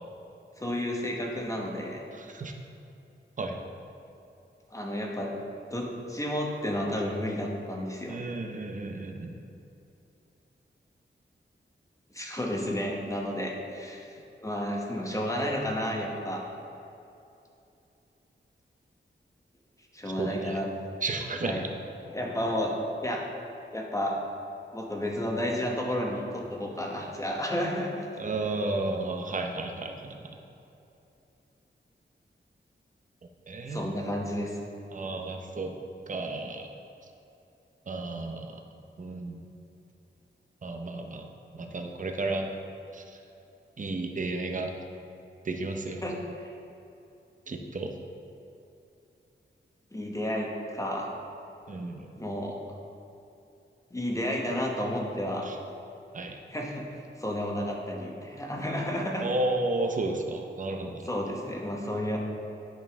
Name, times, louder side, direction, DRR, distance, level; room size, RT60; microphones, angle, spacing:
voice 1, 0.6-2.0 4.7-5.4 5.7-8.2 12.1-16.4 19.9-20.7 21.4-21.6 22.1-22.7 23.0-23.3 23.7-24.2 24.7-28.1 33.7-34.6 46.0-46.5 49.9-51.1 52.2-52.6 53.9-55.5 56.5-56.8 57.2-59.3 61.0-62.2, left 1 dB, 15° left, -1 dB, 0.9 m, -31 dB
voice 2, 2.1-2.5 3.4-3.6 8.1-9.3 20.2-20.6 21.0-21.7 28.2-30.4 33.5-34.0 34.9-35.7 36.1-36.7 37.9-38.6 39.0-39.4 40.6-41.3 41.5-42.5 42.9-43.2 43.8-44.7 45.4-46.0 47.5-47.9 51.7-52.1 55.4-55.6 56.1-56.4 59.2-61.1, right 2 dB, 40° right, 3 dB, 0.7 m, -32 dB
9.7 x 5.3 x 3.5 m, 2.8 s
wide cardioid pair, 105°, 20 cm